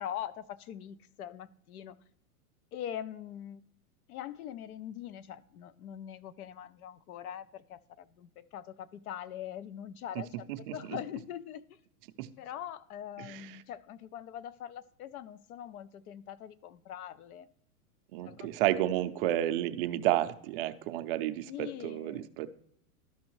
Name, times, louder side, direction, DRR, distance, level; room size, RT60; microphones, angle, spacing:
voice 1, 0.0-2.0 2.7-3.6 4.1-11.8 12.4-17.5 18.2-18.9 21.5-22.3, left 10 dB, 75° left, 16 dB, 0.7 m, -43 dB
voice 2, 10.5-11.0 12.2-12.3 13.2-13.5 18.1-22.5, right 14 dB, 40° right, 9 dB, 0.5 m, -31 dB
13.0 x 5.4 x 3.0 m, 0.72 s
hypercardioid pair, 130°, 44 cm